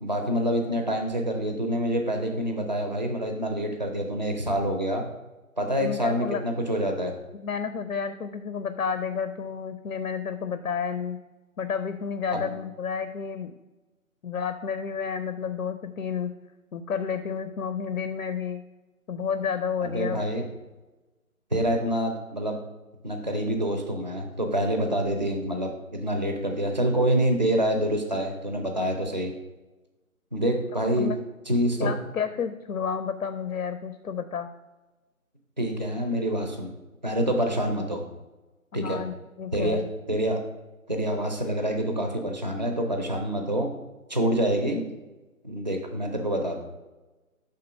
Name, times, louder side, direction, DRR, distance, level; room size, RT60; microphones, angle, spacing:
voice 1, 0.0-5.1 5.6-7.1 12.3-12.5 19.8-20.4 21.5-22.6 23.0-29.3 30.3-31.1 31.5-31.9 35.6-36.7 37.0-38.0 38.7-39.0 39.5-39.8 40.1-40.4 40.9-43.7 44.1-44.8 45.4-46.6, right 1 dB, 35° right, 3 dB, 0.5 m, -26 dB
voice 2, 5.8-6.4 7.4-11.2 11.6-13.5 14.2-16.3 16.7-18.6 19.1-20.2 31.0-31.2 31.8-34.5 38.7-39.9, left 6 dB, 80° left, 10 dB, 0.5 m, -31 dB
5.4 x 3.7 x 5.5 m, 1.1 s
figure-of-eight pair, 160°, 43 cm